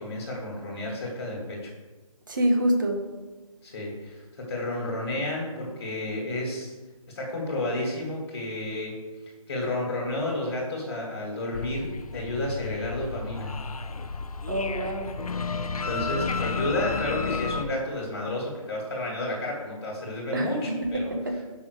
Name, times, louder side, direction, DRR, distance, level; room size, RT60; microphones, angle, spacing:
voice 1, 0.0-1.7 3.6-6.7 7.2-8.9 9.5-13.5 15.7-21.4, left 1 dB, 25° left, -4 dB, 1.9 m, -31 dB
voice 2, 2.3-3.0 14.5-15.1 20.3-21.4, equal, 35° right, 3 dB, 1.0 m, -26 dB
sound 1, 11.5-17.6, left 4 dB, 75° left, 0.6 m, -32 dB
5.9 x 5.7 x 6.5 m, 1.2 s
figure-of-eight pair, 175°, 19 cm